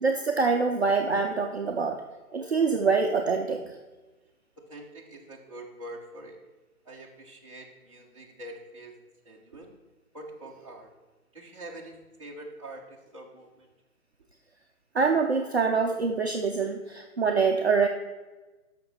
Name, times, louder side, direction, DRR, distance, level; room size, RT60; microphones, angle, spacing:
voice 1, 0.0-2.0 2.3-3.7 14.9-17.9, right 4 dB, 45° right, 3 dB, 0.6 m, -25 dB
voice 2, 4.6-6.4 6.8-8.9 9.2-9.7 10.1-10.9 11.3-13.7 15.3-15.5, right 1 dB, 20° right, -4 dB, 1.0 m, -45 dB
13.0 x 5.8 x 4.3 m, 1.2 s
hypercardioid pair, 175°, 44 cm